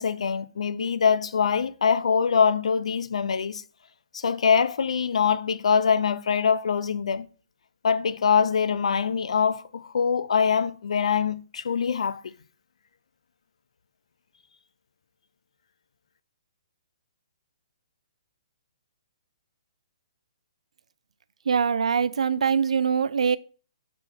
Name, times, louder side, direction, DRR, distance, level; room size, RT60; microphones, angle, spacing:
voice 1, 0.0-3.6 4.1-7.3 7.8-12.2, left 6 dB, 75° left, 0.6 m, -23 dB
voice 2, 21.5-23.4, right 6 dB, 85° right, 0.5 m, -23 dB
6.2 x 4.3 x 4.3 m
hypercardioid pair, 170°, 3 cm